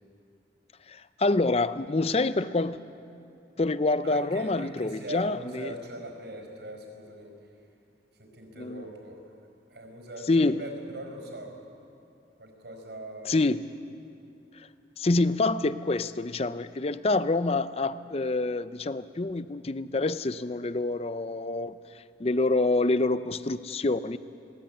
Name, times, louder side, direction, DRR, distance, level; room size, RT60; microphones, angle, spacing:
voice 1, 0.9-2.8 3.6-5.7 8.6-8.8 10.3-10.6 13.2-13.6 15.0-21.8 22.2-24.2, left 2 dB, 35° left, 14 dB, 0.5 m, -26 dB
voice 2, 4.0-7.3 8.2-9.2 9.7-11.5 12.4-13.4, right 1 dB, 75° right, 3 dB, 4.8 m, -41 dB
22.0 x 17.5 x 8.6 m, 2.6 s
head